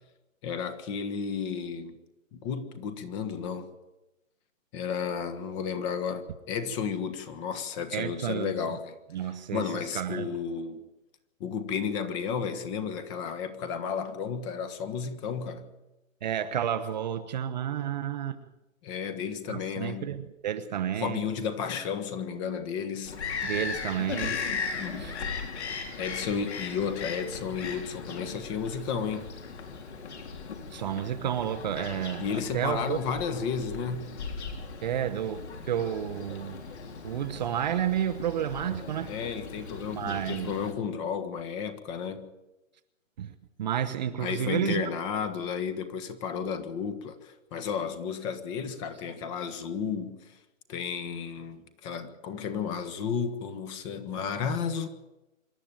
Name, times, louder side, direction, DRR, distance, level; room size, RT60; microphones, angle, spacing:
voice 1, 0.4-2.0 2.3-3.7 4.7-8.9 9.5-10.8 11.4-15.7 18.8-20.1 21.0-23.2 24.7-25.1 26.0-29.3 32.2-34.1 39.1-42.3 44.2-50.4 50.7-54.9, left 6 dB, 20° left, 1.5 m, -33 dB
voice 2, 7.9-8.5 9.1-10.3 16.2-18.4 19.5-21.2 23.4-24.4 25.0-25.2 30.7-33.0 34.8-36.6 37.0-39.1 39.9-40.5 43.2-44.9, right 10 dB, 35° right, 0.9 m, -31 dB
Bird vocalization bird call bird song, 23.0-40.7, left 5 dB, 55° left, 3.9 m, -38 dB
26.0 x 12.0 x 9.0 m
hypercardioid pair, 150°, 40 cm